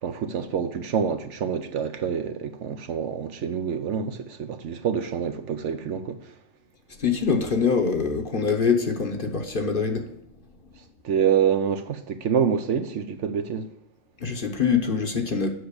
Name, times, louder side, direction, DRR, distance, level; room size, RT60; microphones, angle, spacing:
voice 1, 0.0-6.3 11.0-13.7, right 7 dB, 70° right, 1.0 m, -26 dB
voice 2, 7.0-10.1 14.2-15.5, left 5 dB, 45° left, 1.1 m, -24 dB
8.0 x 5.8 x 6.6 m
omnidirectional pair, 1.4 m